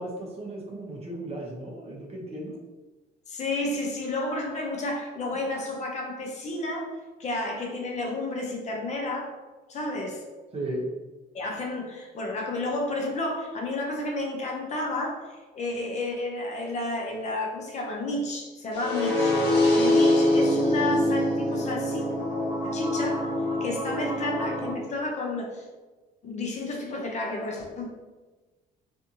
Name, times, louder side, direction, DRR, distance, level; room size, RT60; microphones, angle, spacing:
voice 1, 0.0-2.6 10.5-10.8, right 1 dB, 35° right, -2 dB, 0.8 m, -35 dB
voice 2, 3.3-6.9 7.2-9.3 9.7-10.2 11.3-19.4 19.7-22.1 22.6-23.3 23.6-25.6 26.2-27.9, left 2 dB, 45° left, 0 dB, 0.6 m, -31 dB
sound 1, 18.7-24.7, left 1 dB, 90° left, 0.9 m, -24 dB
2.6 x 2.5 x 2.7 m, 1.2 s
cardioid pair, 110°, 17 cm